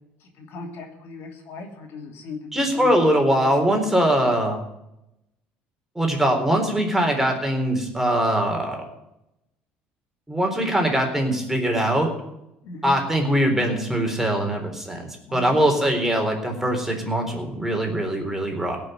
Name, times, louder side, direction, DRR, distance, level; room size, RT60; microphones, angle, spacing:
voice 1, 0.2-2.9 12.6-13.0 15.3-15.9, left 3 dB, 65° left, 2 dB, 2.9 m, -37 dB
voice 2, 2.5-4.6 6.0-8.8 10.3-12.1 12.8-15.0 15.3-18.8, right 1 dB, 5° right, 2 dB, 4.0 m, -22 dB
17.0 x 6.0 x 9.1 m, 0.86 s
supercardioid pair, 75°, 4 cm